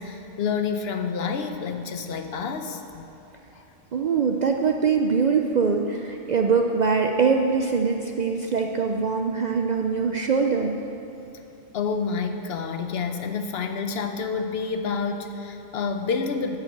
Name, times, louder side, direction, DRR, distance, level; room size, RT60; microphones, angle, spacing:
voice 1, 0.0-3.1 11.7-16.6, left 5 dB, 65° left, 7 dB, 0.9 m, -28 dB
voice 2, 3.9-10.8, right 5 dB, 55° right, 3 dB, 0.5 m, -23 dB
11.0 x 5.6 x 7.9 m, 3.0 s
omnidirectional pair, 1.2 m